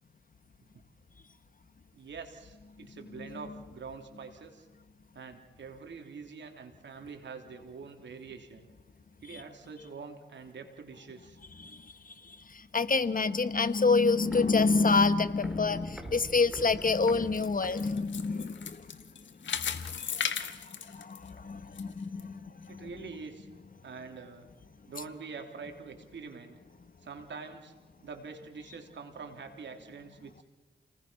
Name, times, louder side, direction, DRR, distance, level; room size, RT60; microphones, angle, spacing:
voice 1, 1.9-4.7 5.1-8.7 9.2-11.4 22.7-23.5 23.8-24.5 24.9-26.6 27.0-27.7 28.0-30.4, right 5 dB, 80° right, 5 dB, 3.4 m, -45 dB
voice 2, 11.6-19.0 19.4-22.9, left 4 dB, 50° left, 12 dB, 1.4 m, -28 dB
Walk footsteps, 13.7-18.4 18.7-18.8, equal, ahead, 4.7 m, -46 dB
sound 1, 16.9-21.8 22.2-22.3 22.9-23.0, left 7 dB, 85° left, 1.6 m, -36 dB
29.5 x 19.5 x 5.8 m, 1.2 s
cardioid pair, 55°, 19 cm